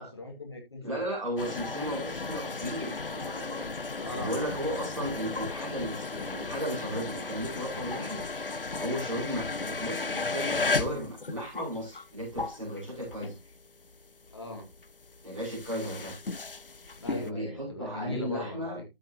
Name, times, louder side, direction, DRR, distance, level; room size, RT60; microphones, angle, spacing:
voice 1, 0.0-1.1 4.0-4.4 14.3-14.7 17.0-18.8, left 2 dB, 25° left, 2.4 m, -39 dB
voice 2, 0.8-3.7 4.1-8.3 8.8-13.4 15.2-16.1 17.0-18.8, equal, 5° right, 3.4 m, -35 dB
sound 1, 1.4-13.6 13.9-17.3, left 3 dB, 65° left, 0.7 m, -35 dB
13.5 x 5.5 x 2.9 m
figure-of-eight pair, 170°, 29 cm